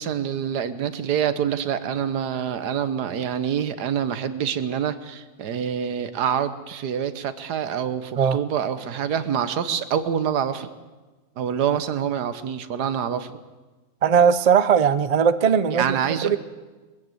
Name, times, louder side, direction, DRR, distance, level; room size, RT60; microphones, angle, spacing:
voice 1, 0.0-10.7 11.4-13.3 15.7-16.3, right 8 dB, 90° right, 12 dB, 1.6 m, -26 dB
voice 2, 14.0-16.4, right 7 dB, 55° right, 14 dB, 0.4 m, -19 dB
22.0 x 15.5 x 7.9 m, 1.3 s
omnidirectional pair, 1.7 m